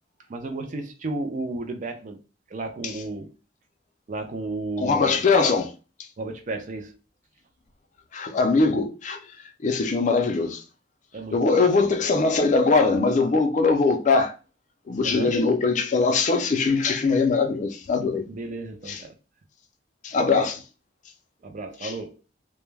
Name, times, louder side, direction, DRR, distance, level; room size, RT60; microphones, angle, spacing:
voice 1, 0.3-2.2 2.5-3.3 4.1-5.2 6.2-6.9 11.1-12.1 15.0-15.4 18.3-19.1 21.4-22.2, right 2 dB, 40° right, 0.4 m, -33 dB
voice 2, 4.8-5.7 8.1-9.2 9.6-10.6 11.3-14.3 14.9-18.3 18.9-19.0 20.0-20.6 21.8-21.9, left 4 dB, 40° left, 0.4 m, -21 dB
2.2 x 2.1 x 3.1 m
head